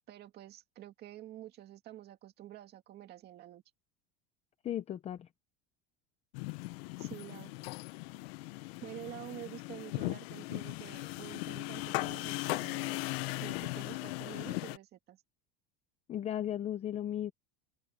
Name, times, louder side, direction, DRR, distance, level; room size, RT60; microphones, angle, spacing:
voice 1, 0.1-3.6 7.0-7.5 8.8-12.9 13.4-15.2, right 13 dB, 35° right, 2.3 m, -48 dB
voice 2, 4.6-5.3 16.1-17.3, left 11 dB, 20° left, 0.6 m, -35 dB
sound 1, 6.3-14.8, left 21 dB, 80° left, 0.8 m, -38 dB
open air
cardioid pair, 170°, 30 cm